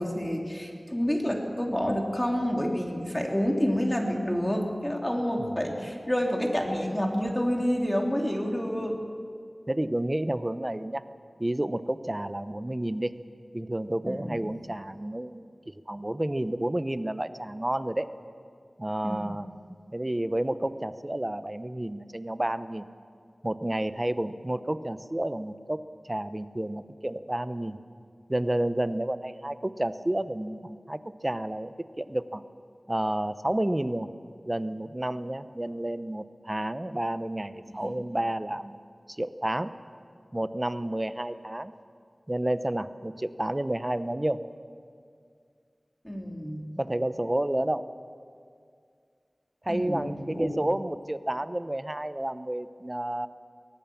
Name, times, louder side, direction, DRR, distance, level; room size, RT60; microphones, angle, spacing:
voice 1, 0.0-9.0 14.1-14.4 19.0-19.2 37.8-37.9 46.0-46.7 49.7-50.5, equal, 15° left, 0 dB, 3.1 m, -28 dB
voice 2, 5.4-5.8 9.7-11.0 11.4-13.1 13.5-18.1 18.8-19.5 19.9-22.9 23.4-25.8 26.1-27.8 28.3-32.4 32.9-34.1 34.4-38.8 39.1-39.7 40.3-41.7 42.3-44.4 46.8-47.8 49.6-53.3, right 1 dB, 25° right, 12 dB, 0.8 m, -30 dB
23.0 x 18.0 x 7.2 m, 2.2 s
wide cardioid pair, 60°, 0 cm